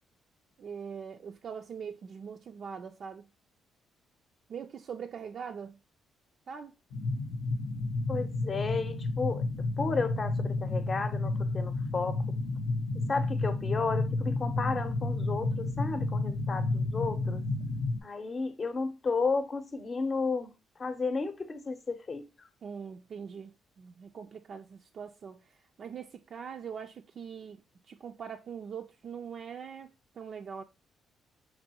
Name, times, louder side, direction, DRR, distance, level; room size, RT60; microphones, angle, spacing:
voice 1, 0.6-3.3 4.5-5.8 6.5-6.7 22.6-27.6 27.9-30.6, right 7 dB, 55° right, 0.3 m, -42 dB
sound 1, 6.9-18.0, left 2 dB, 80° left, 0.6 m, -31 dB
voice 2, 8.1-9.4 9.8-12.2 13.1-17.4 18.0-20.5 20.8-22.2, left 4 dB, 40° left, 0.7 m, -33 dB
5.3 x 3.0 x 2.8 m
cardioid pair, 90°, 0 cm